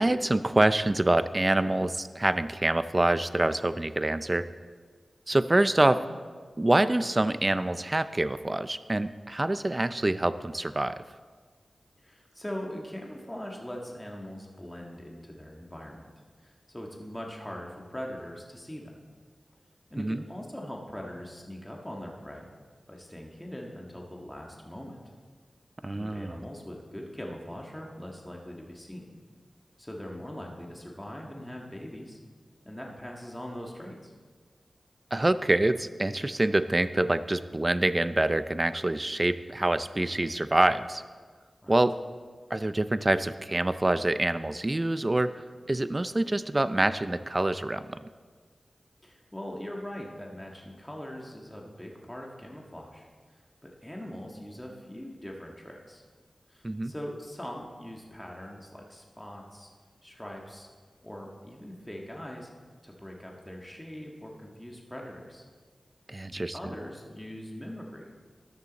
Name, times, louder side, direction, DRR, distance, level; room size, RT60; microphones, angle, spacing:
voice 1, 0.0-4.5 5.3-6.0 6.6-11.0 20.0-20.2 25.8-26.4 35.1-41.0 41.7-42.0 42.5-45.3 45.7-48.0 56.6-56.9 66.1-66.7, right 2 dB, 25° right, 12 dB, 0.5 m, -26 dB
voice 2, 12.0-16.1 16.4-19.0 19.9-22.5 22.9-25.0 25.9-29.0 29.8-32.2 32.6-34.1 41.6-41.8 49.0-53.1 53.6-56.0 56.5-59.7 60.0-60.7 61.0-62.5 62.8-65.5 66.5-68.1, equal, 10° left, -1 dB, 1.7 m, -41 dB
13.5 x 11.0 x 4.1 m, 1.5 s
wide cardioid pair, 85°, 0 cm